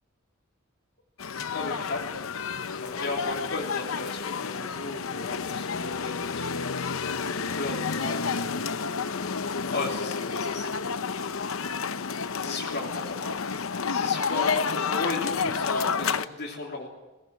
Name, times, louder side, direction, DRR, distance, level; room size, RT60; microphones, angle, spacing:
sound 1, 1.2-16.2, left 5 dB, 70° left, 0.8 m, -30 dB
voice 1, 1.5-2.1 2.7-8.8 9.7-11.0 12.4-16.9, left 2 dB, 50° left, -4 dB, 3.2 m, -36 dB
21.5 x 19.0 x 9.4 m, 1.1 s
head